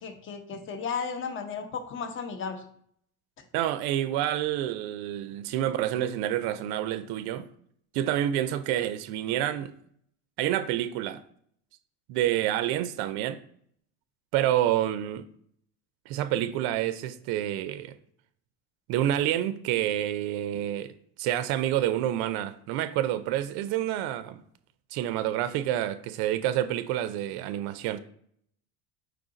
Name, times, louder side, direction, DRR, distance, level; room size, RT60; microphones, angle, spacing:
voice 1, 0.0-2.6, left 6 dB, 30° left, 0.7 m, -34 dB
voice 2, 3.5-7.5 7.9-9.7 10.4-11.2 12.1-13.4 14.3-15.2 16.1-18.0 18.9-20.9 21.2-24.4 24.9-28.0, right 12 dB, 60° right, 0.5 m, -28 dB
4.7 x 2.5 x 3.8 m
supercardioid pair, 100°, 42 cm